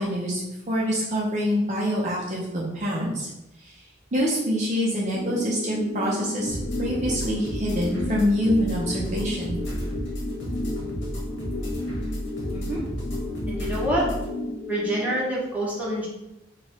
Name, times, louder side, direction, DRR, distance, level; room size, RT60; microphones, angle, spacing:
voice 1, 0.0-3.3 3.6-3.8 4.1-9.6, equal, 40° right, -4 dB, 0.6 m, -26 dB
sound 1, 5.1-15.1, left 2 dB, 40° left, 0.6 m, -33 dB
sound 2, 6.5-14.3, equal, 70° left, 1.1 m, -33 dB
voice 2, 12.5-12.8 13.5-14.1 14.7-16.1, right 1 dB, 10° right, -6 dB, 1.0 m, -26 dB
4.3 x 2.3 x 3.5 m, 0.92 s
head